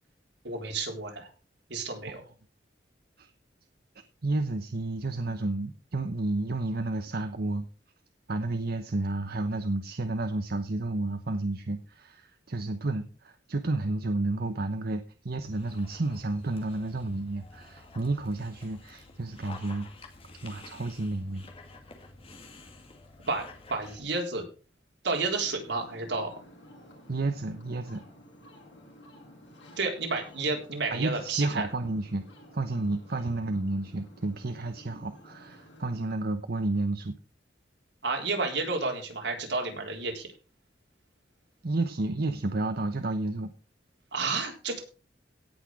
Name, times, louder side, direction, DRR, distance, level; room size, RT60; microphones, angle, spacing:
voice 1, 0.4-1.3 1.7-2.2 23.3-23.4 23.7-24.5 25.0-26.3 29.8-31.7 38.0-40.3 44.1-44.8, right 3 dB, 80° right, 1 dB, 3.7 m, -31 dB
voice 2, 4.2-7.7 8.3-19.9 20.4-21.5 27.1-28.0 30.9-32.2 32.5-37.1 41.6-43.5, right 2 dB, 60° right, 8 dB, 0.9 m, -31 dB
Dog, 15.4-24.0, left 3 dB, 35° left, 2.1 m, -50 dB
Ocean, 25.3-36.1, left 1 dB, 85° left, 8.0 m, -52 dB
17.5 x 6.1 x 4.7 m, 0.35 s
head